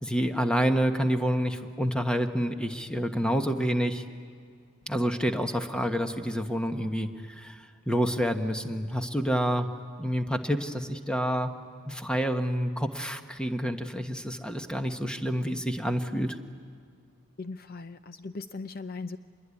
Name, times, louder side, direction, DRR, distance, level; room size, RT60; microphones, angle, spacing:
voice 1, 0.0-4.0 4.9-9.7 10.0-11.5 11.9-16.4, equal, 5° left, 6 dB, 1.2 m, -28 dB
voice 2, 17.4-19.2, left 3 dB, 45° left, 10 dB, 0.6 m, -38 dB
26.5 x 21.5 x 9.8 m, 2.1 s
head